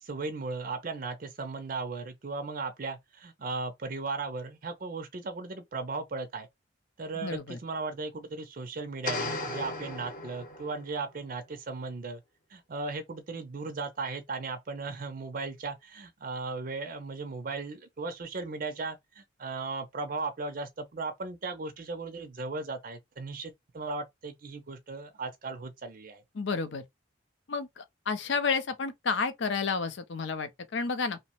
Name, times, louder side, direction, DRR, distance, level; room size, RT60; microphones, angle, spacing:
voice 1, 0.0-6.5 7.0-12.2 12.5-26.2, right 3 dB, 45° right, 0.5 m, -37 dB
voice 2, 7.1-7.6 26.3-26.9 27.5-31.2, left 5 dB, 65° left, 0.5 m, -31 dB
sound 1, 9.0-11.0, left 2 dB, 45° left, 0.9 m, -36 dB
2.8 x 2.0 x 2.9 m
head